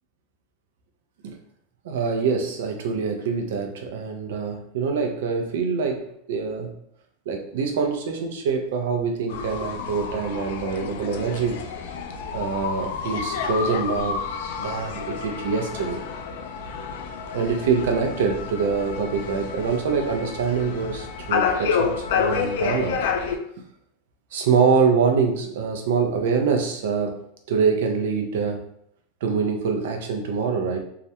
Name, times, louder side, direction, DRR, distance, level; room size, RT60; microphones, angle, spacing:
voice 1, 1.8-6.7 7.3-11.6 12.3-14.2 14.6-16.0 17.3-23.0 24.3-27.2 27.5-28.6 29.2-30.8, right 5 dB, 80° right, 3 dB, 0.5 m, -24 dB
sound 1, 9.3-23.4, left 6 dB, 70° left, 0.3 m, -29 dB
2.4 x 2.1 x 2.8 m, 0.72 s
supercardioid pair, 165°, 0 cm